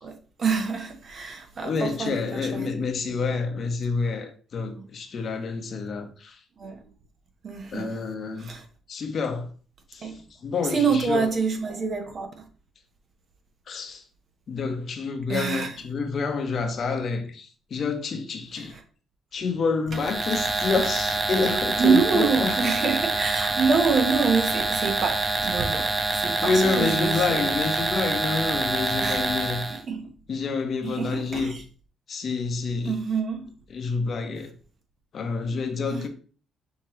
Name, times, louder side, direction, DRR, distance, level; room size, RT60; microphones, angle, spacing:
voice 1, 0.0-2.7 3.1-3.2 4.7-4.8 6.6-6.8 7.4-8.0 8.4-8.6 10.0-10.2 10.7-12.4 15.3-15.8 18.6-18.8 21.8-27.5 29.0-29.2 29.7-30.1 30.8-31.6 32.9-33.5 35.9-36.1, right 5 dB, 50° right, 1.0 m, -26 dB
voice 2, 1.6-6.4 7.7-8.5 8.9-9.5 9.9-11.3 13.7-14.0 14.5-18.8 19.3-22.6 26.4-29.7 30.3-31.5 32.1-33.0 33.7-34.5 35.1-36.1, left 4 dB, 55° left, 0.8 m, -28 dB
sound 1, 19.9-29.8, right 3 dB, 30° right, 0.8 m, -26 dB
5.9 x 2.9 x 3.1 m
cardioid pair, 90°, 0 cm